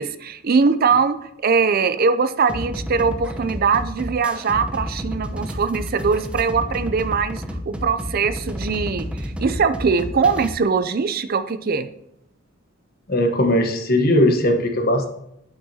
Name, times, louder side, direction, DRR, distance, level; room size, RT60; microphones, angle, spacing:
voice 1, 0.0-11.9, right 5 dB, 50° right, 12 dB, 0.5 m, -21 dB
sound 1, 2.5-10.5, equal, 5° right, 0.7 m, -31 dB
voice 2, 13.1-15.1, left 1 dB, 50° left, 4 dB, 1.3 m, -18 dB
8.8 x 8.4 x 2.8 m, 0.77 s
head